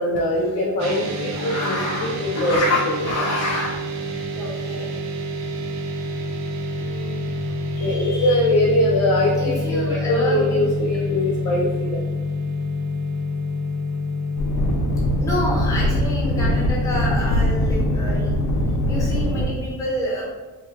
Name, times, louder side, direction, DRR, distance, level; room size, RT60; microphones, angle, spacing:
voice 1, 0.0-3.7 7.7-12.0, left 1 dB, 50° left, -3 dB, 0.4 m, -22 dB
sound 1, 0.8-19.1, left 2 dB, 55° right, 0.5 m, -27 dB
voice 2, 4.3-4.9 6.7-7.3 9.4-10.6 15.2-18.3 18.9-20.2, left 1 dB, 10° left, -6 dB, 0.9 m, -29 dB
sound 2, 14.4-19.4, equal, 85° left, 0.7 m, -22 dB
3.2 x 2.2 x 3.2 m, 1.3 s
cardioid pair, 150°, 35 cm